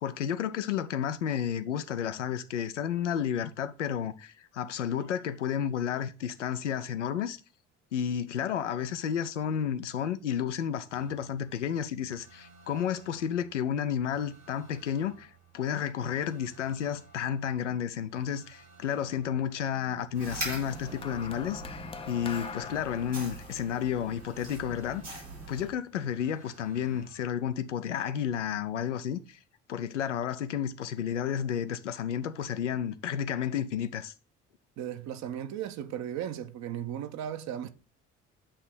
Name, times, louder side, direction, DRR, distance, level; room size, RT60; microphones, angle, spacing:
voice 1, 0.0-7.4 7.9-29.4 29.7-34.1, left 8 dB, 85° left, 0.5 m, -32 dB
sound 1, 10.9-27.5, right 4 dB, 70° right, 2.6 m, -58 dB
sound 2, 20.1-25.7, right 2 dB, 90° right, 3.5 m, -42 dB
sound 3, 20.7-25.2 26.1-26.3, left 5 dB, 15° left, 0.4 m, -44 dB
voice 2, 34.8-37.7, right 10 dB, 50° right, 0.7 m, -36 dB
8.5 x 2.9 x 4.7 m
figure-of-eight pair, 50°, 35 cm